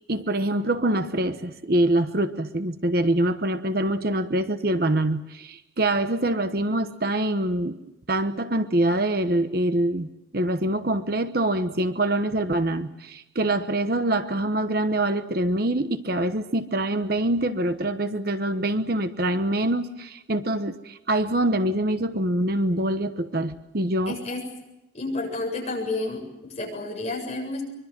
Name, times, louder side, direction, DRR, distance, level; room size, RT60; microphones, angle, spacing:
voice 1, 0.1-7.8 8.1-10.1 10.3-24.1, right 1 dB, 50° right, 9 dB, 1.1 m, -25 dB
voice 2, 24.1-24.4 24.9-27.6, left 2 dB, 35° left, 0 dB, 7.5 m, -30 dB
24.5 x 23.5 x 7.5 m, 0.93 s
head